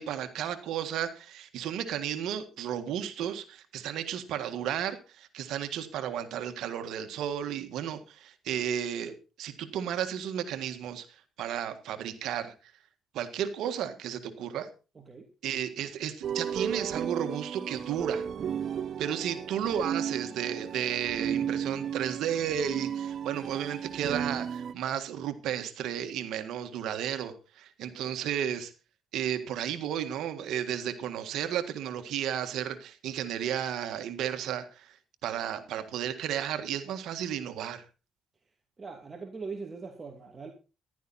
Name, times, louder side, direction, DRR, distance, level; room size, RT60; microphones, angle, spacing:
voice 1, 0.0-11.1 11.4-12.5 13.1-14.7 15.4-18.3 19.0-28.7 29.1-35.0 35.2-37.9, right 9 dB, 80° right, 1.7 m, -33 dB
voice 2, 15.0-15.3 38.8-40.5, right 4 dB, 30° right, 2.5 m, -41 dB
sound 1, 16.2-24.7, right 8 dB, 60° right, 0.9 m, -34 dB
15.0 x 12.5 x 4.2 m
cardioid pair, 90°, 0 cm